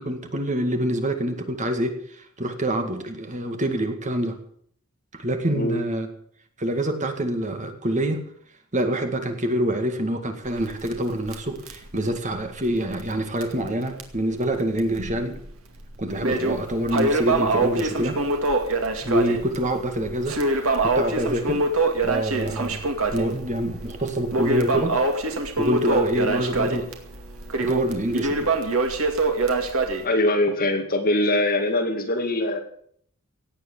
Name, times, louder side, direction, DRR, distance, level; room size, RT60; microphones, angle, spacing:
voice 1, 0.0-4.4 5.1-6.1 6.6-8.2 8.7-15.4 16.0-18.2 19.0-21.7 22.0-22.8 23.1-25.0 25.6-26.8 27.6-28.5, right 1 dB, 35° right, 6 dB, 2.0 m, -26 dB
voice 2, 5.5-5.8 26.2-26.4 30.0-32.6, left 1 dB, 45° left, 4 dB, 2.3 m, -23 dB
Crackle, 10.5-13.2 13.4-13.5 14.0-14.1 14.8-15.4 15.8-30.0, right 2 dB, 70° right, 2.3 m, -25 dB
17.5 x 8.2 x 8.0 m, 0.63 s
head